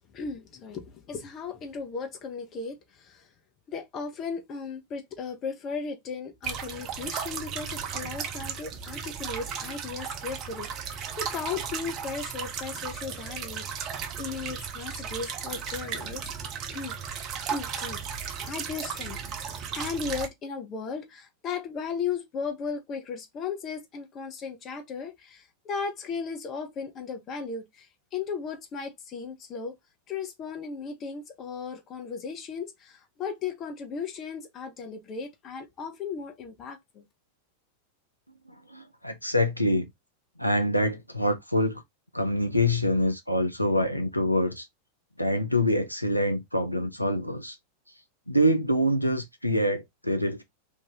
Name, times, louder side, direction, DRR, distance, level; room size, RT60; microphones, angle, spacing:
voice 1, 0.1-3.3 3.7-16.3 16.7-17.0 17.5-29.8 30.1-37.0, left 5 dB, 30° left, 0.9 m, -36 dB
sound 1, 6.4-20.3, right 7 dB, 35° right, 0.6 m, -35 dB
voice 2, 38.7-39.9 40.4-41.8 42.1-44.7 45.2-47.6 48.3-50.4, equal, 90° left, 0.5 m, -25 dB
2.9 x 2.5 x 4.0 m
figure-of-eight pair, 90°, 0 cm